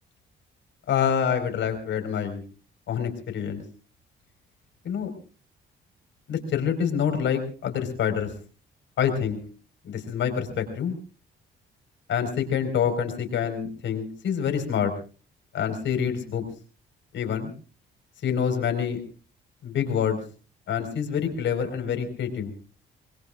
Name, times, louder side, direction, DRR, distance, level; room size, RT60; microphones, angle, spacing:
voice 1, 0.9-2.4 2.9-3.6 4.8-5.1 6.3-8.3 9.0-9.4 9.8-10.9 12.1-14.9 15.5-16.4 17.1-17.5 18.2-19.0 19.6-20.2 20.7-22.5, left 8 dB, 70° left, 6 dB, 4.9 m, -26 dB
26.0 x 21.0 x 2.5 m, 0.38 s
cardioid pair, 90°, 20 cm